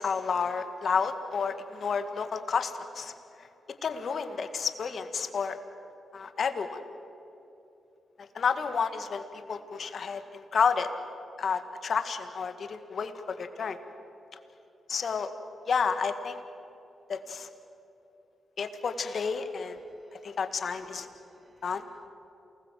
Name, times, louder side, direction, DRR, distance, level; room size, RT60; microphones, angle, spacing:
voice 1, 0.0-3.1 3.4-3.5 3.8-5.6 6.1-6.8 8.2-10.9 11.4-13.8 14.9-15.3 15.7-16.4 17.1-17.5 18.6-19.8 20.1-21.1 21.6-21.8, left 5 dB, 60° left, 9 dB, 2.0 m, -30 dB
voice 2, 19.8-20.4 21.1-22.1, right 1 dB, 40° right, 10 dB, 2.0 m, -62 dB
28.5 x 20.0 x 7.7 m, 2.9 s
supercardioid pair, 55°, 0 cm